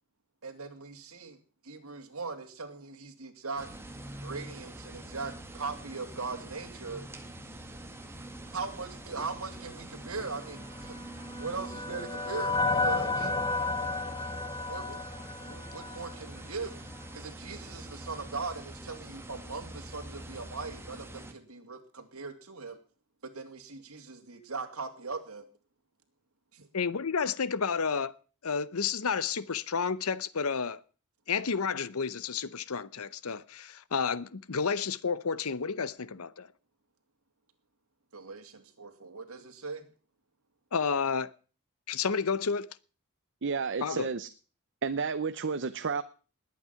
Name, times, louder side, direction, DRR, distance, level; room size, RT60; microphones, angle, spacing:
voice 1, 0.4-1.4 1.6-3.7 4.2-7.0 8.5-11.0 11.4-13.4 14.7-15.0 15.4-16.7 17.1-22.8 23.2-25.5 26.5-26.7 38.1-39.8, right 4 dB, 75° right, 2.7 m, -40 dB
sound 1, 3.6-21.3, right 1 dB, 10° right, 2.0 m, -44 dB
sound 2, 10.9-16.2, left 3 dB, 20° left, 0.9 m, -32 dB
voice 2, 26.7-28.1 28.4-30.8 31.3-36.5 40.7-41.3 41.9-42.7 43.8-44.1, left 5 dB, 75° left, 0.8 m, -31 dB
voice 3, 43.4-44.3 44.8-46.0, right 5 dB, 60° right, 0.8 m, -31 dB
20.0 x 8.7 x 5.9 m
head